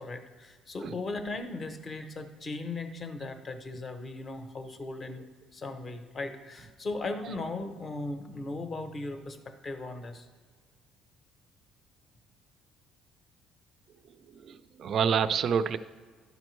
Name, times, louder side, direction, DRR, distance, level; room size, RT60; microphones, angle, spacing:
voice 1, 0.0-5.3 5.5-10.3, left 2 dB, 25° left, 7 dB, 0.6 m, -37 dB
voice 2, 14.3-15.8, right 7 dB, 40° right, 13 dB, 0.3 m, -28 dB
12.0 x 5.2 x 3.1 m, 1.5 s
cardioid pair, 165°, 0 cm